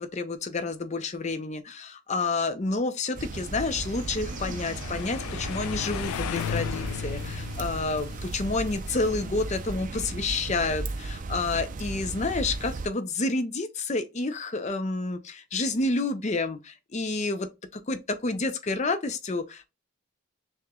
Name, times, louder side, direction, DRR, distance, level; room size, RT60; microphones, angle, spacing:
voice 1, 0.0-19.6, left 3 dB, 35° left, 0.6 m, -29 dB
sound 1, 3.2-12.9, right 3 dB, 40° right, 0.5 m, -35 dB
sound 2, 3.6-9.7, left 8 dB, 85° left, 0.3 m, -36 dB
6.2 x 3.0 x 2.3 m
head